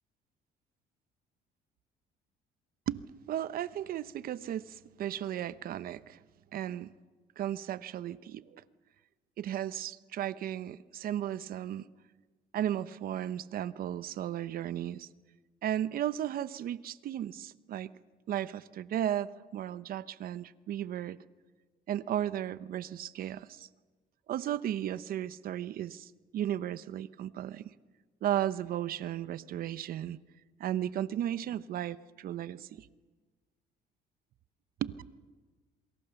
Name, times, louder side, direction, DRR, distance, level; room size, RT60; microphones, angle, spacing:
voice 1, 2.9-6.2 6.5-6.9 7.4-8.6 9.4-11.9 12.5-15.1 15.6-17.9 18.3-21.2 21.9-23.7 24.3-27.7 28.2-30.2 30.6-32.9 34.8-34.9, right 11 dB, 60° right, 16 dB, 0.8 m, -35 dB
27.5 x 24.0 x 7.1 m, 1.3 s
cardioid pair, 110°, 17 cm